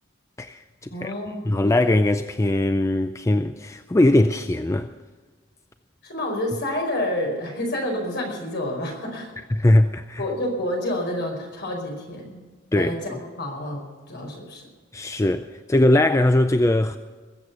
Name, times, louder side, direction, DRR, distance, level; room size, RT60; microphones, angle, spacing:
voice 1, 0.4-1.1 1.4-4.9 9.5-10.2 12.7-13.2 14.9-17.0, left 1 dB, 15° left, 0.4 m, -20 dB
voice 2, 0.9-1.7 6.0-9.3 10.2-12.4 12.7-14.7, left 1 dB, 60° left, 5.0 m, -29 dB
21.5 x 8.1 x 6.9 m
head